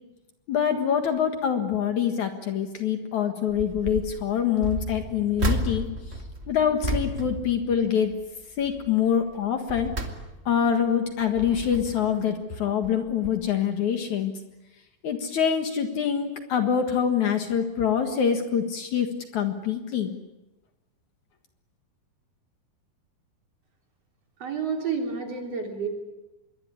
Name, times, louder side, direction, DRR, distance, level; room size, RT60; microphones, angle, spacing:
voice 1, 0.5-5.9 6.5-8.1 8.6-9.9 10.5-14.3 15.0-19.1 19.3-20.1, left 8 dB, 60° left, 6 dB, 2.8 m, -25 dB
sound 1, 3.5-4.1 4.6-8.2 8.6-8.9 9.4-10.7 11.2-12.2 12.8-13.0 13.2-13.3, right 1 dB, 25° right, 1.5 m, -32 dB
voice 2, 24.4-25.9, right 5 dB, 45° right, 2 dB, 4.3 m, -30 dB
26.0 x 22.5 x 9.8 m, 1.1 s
omnidirectional pair, 4.3 m